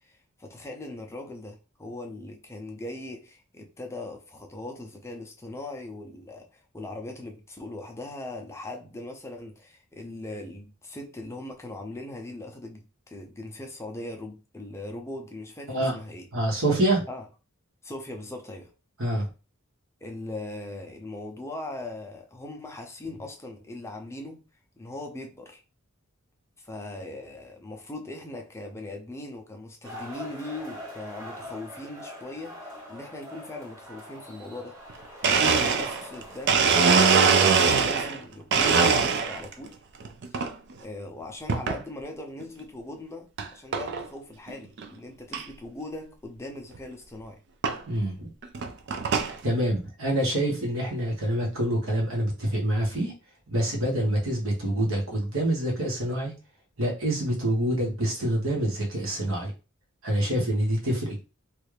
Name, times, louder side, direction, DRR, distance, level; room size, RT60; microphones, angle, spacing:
voice 1, 0.0-16.3 17.1-17.2 17.8-18.7 20.0-24.4 24.8-25.6 26.6-34.8 35.7-39.8 40.3-47.4, left 2 dB, 15° left, 0.5 m, -40 dB
voice 2, 16.3-17.0 19.0-19.2 47.9-48.3 49.4-53.1 53.5-56.3 56.8-59.5 60.0-61.2, right 1 dB, 75° right, 1.5 m, -26 dB
sound 1, 29.8-37.9, equal, 15° right, 1.0 m, -43 dB
Domestic sounds home sounds, 34.9-35.0 35.2-38.2 38.5-39.5 40.0-40.5 41.5-41.8 42.4-42.5 43.4-43.5 43.7-44.1 44.5-44.6 44.8-44.9 45.3-45.4 46.7-46.8 47.6-47.8 48.4-49.4, right 5 dB, 55° right, 0.4 m, -22 dB
3.2 x 2.4 x 3.3 m
head